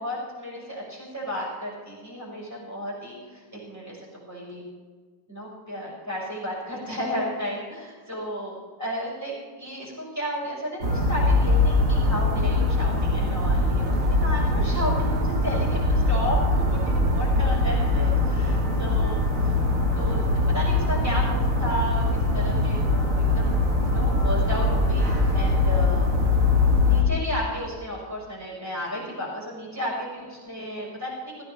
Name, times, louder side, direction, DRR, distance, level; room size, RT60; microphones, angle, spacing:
voice 1, 0.0-4.0 4.3-4.6 5.3-19.6 19.9-26.1 26.8-31.3, equal, 10° right, -6 dB, 5.0 m, -33 dB
sound 1, 10.8-27.0, left 2 dB, 45° right, 2.2 m, -22 dB
17.0 x 15.0 x 3.4 m, 1.5 s
omnidirectional pair, 2.0 m